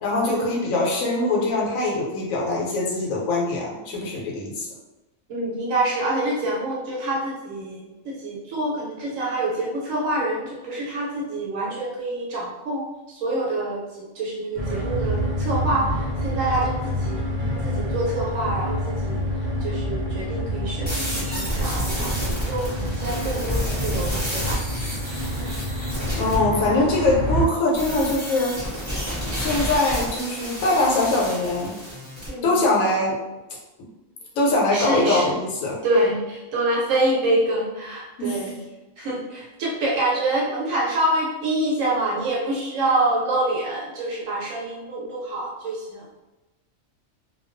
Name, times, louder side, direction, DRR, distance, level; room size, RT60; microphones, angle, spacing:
voice 1, 0.0-4.7 26.2-28.6 29.2-31.7 32.4-33.2 34.4-35.8 38.2-38.4, left 2 dB, 80° left, -3 dB, 1.0 m, -22 dB
voice 2, 5.3-12.8 13.1-17.2 17.6-19.2 19.6-24.6 32.3-32.6 34.7-35.3 35.8-38.5 39.0-46.0, right 1 dB, 80° right, -4 dB, 1.0 m, -26 dB
sound 1, 14.6-27.5, equal, 55° right, 0.5 m, -27 dB
sound 2, 20.9-26.4 27.7-32.3, equal, 15° right, 0.9 m, -30 dB
2.3 x 2.2 x 2.4 m, 1.0 s
omnidirectional pair, 1.4 m